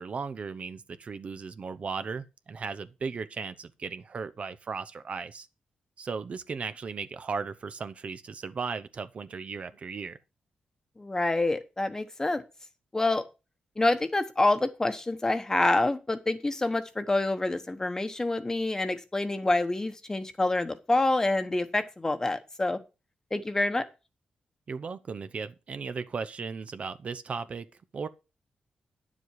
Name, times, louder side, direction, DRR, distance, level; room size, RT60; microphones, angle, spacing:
voice 1, 0.0-5.5 6.0-10.2 24.7-27.7 27.9-28.1, right 5 dB, 50° right, 0.7 m, -36 dB
voice 2, 11.0-12.4 12.9-13.2 13.8-22.8 23.3-23.9, left 2 dB, 20° left, 1.1 m, -27 dB
9.7 x 7.4 x 4.8 m
cardioid pair, 95°, 3 cm